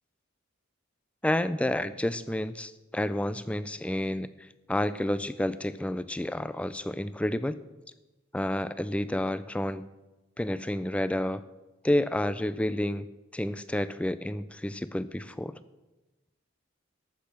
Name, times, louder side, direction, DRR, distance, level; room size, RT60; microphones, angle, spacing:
voice 1, 1.2-7.6 8.3-9.8 10.4-11.4 11.8-15.6, left 1 dB, 5° left, 14 dB, 0.3 m, -30 dB
14.0 x 6.5 x 6.0 m, 1.1 s
head